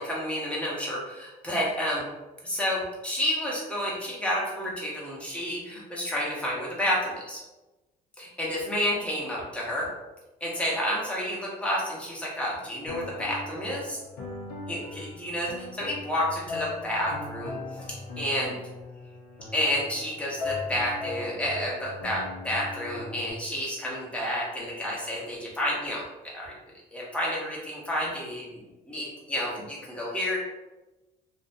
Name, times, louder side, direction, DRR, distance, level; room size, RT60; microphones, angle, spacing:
voice 1, 0.0-2.0 2.4-7.4 8.2-9.9 10.4-14.0 14.7-17.6 17.9-18.6 19.5-26.0 26.3-26.5 26.9-28.6 28.9-30.4, left 1 dB, 5° left, -5 dB, 0.8 m, -30 dB
sound 1, 12.9-23.3, left 3 dB, 85° left, 0.6 m, -38 dB
2.5 x 2.1 x 2.5 m, 1.1 s
cardioid pair, 110°, 17 cm